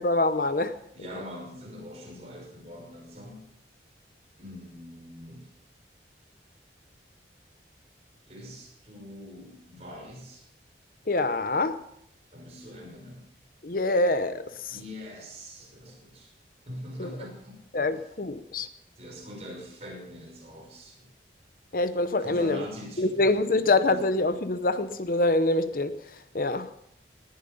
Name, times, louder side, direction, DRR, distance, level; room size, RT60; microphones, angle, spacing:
voice 1, 0.0-0.7 11.1-11.8 13.6-14.8 17.0-17.1 17.7-18.7 21.7-22.6 23.0-26.0 26.3-26.7, left 2 dB, 50° left, 11 dB, 0.8 m, -25 dB
voice 2, 0.9-3.4 4.4-5.5 8.3-10.4 12.3-13.3 14.7-16.3 16.7-17.6 19.0-21.1 22.2-23.8, equal, 35° right, -1 dB, 5.6 m, -43 dB
19.5 x 10.5 x 5.4 m, 0.74 s
head